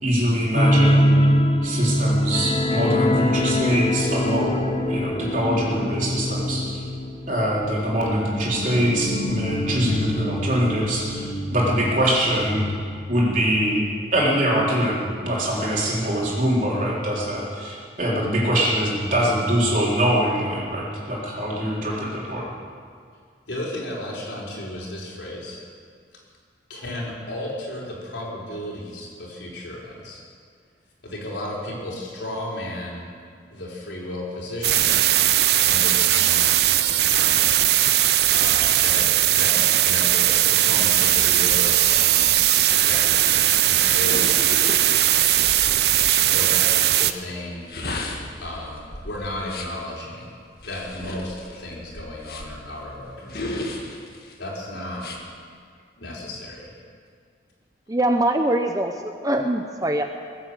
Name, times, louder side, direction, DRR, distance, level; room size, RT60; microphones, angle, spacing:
voice 1, 0.0-1.1 1.6-4.6 4.9-6.7 7.3-12.6 13.1-13.8 14.1-22.4, equal, 45° right, -5 dB, 3.8 m, -23 dB
sound 1, 0.5-13.8 14.1-14.3 14.7-14.8, left 1 dB, 30° left, 0.9 m, -24 dB
voice 2, 23.5-25.6 26.7-30.2 31.0-33.1 33.5-35.0 35.6-37.4 38.3-42.4 42.8-44.9 46.3-47.7 48.4-50.3 50.6-53.7 54.4-55.1 56.0-56.7, left 1 dB, 85° left, -4 dB, 4.3 m, -34 dB
sound 2, 34.6-47.1, right 13 dB, 65° right, 0.6 m, -19 dB
sound 3, 40.9-46.2 47.5-49.8 50.6-52.7 53.3-54.3 55.0-55.2, left 2 dB, 60° left, 1.8 m, -35 dB
voice 3, 57.9-60.0, right 1 dB, 20° right, 5 dB, 0.6 m, -23 dB
20.0 x 8.4 x 7.9 m, 2.1 s
head